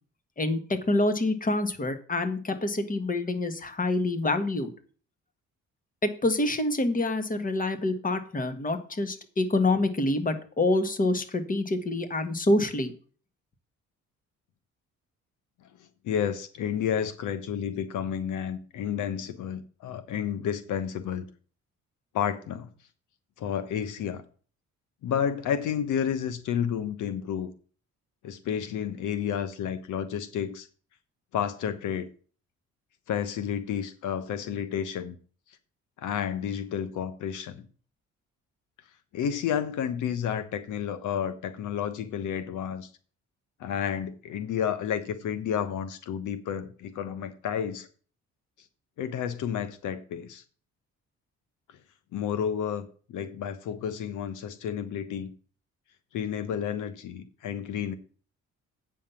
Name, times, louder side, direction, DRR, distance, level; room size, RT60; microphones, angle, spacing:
voice 1, 0.4-4.7 6.0-12.9, left 2 dB, 25° left, 1.6 m, -26 dB
voice 2, 16.0-21.3 22.1-22.7 23.4-24.2 25.0-27.5 28.2-30.7 31.3-32.1 33.1-35.2 36.0-37.7 39.1-42.9 43.6-47.9 49.0-50.4 52.1-55.3 56.1-58.0, left 8 dB, 80° left, 1.1 m, -31 dB
8.6 x 5.8 x 7.1 m
cardioid pair, 90°, 30 cm